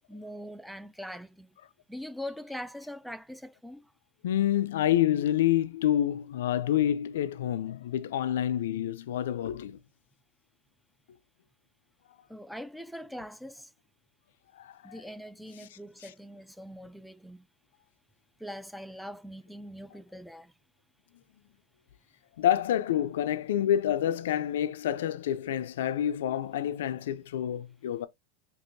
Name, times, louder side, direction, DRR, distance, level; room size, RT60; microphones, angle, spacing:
voice 1, 0.1-1.5 1.9-3.9 12.3-13.7 14.8-17.5 18.4-20.5, equal, ahead, 0.3 m, -42 dB
voice 2, 4.2-9.8 14.6-14.7 22.4-28.1, left 11 dB, 85° left, 0.4 m, -28 dB
4.5 x 2.9 x 2.6 m
supercardioid pair, 130°, 0 cm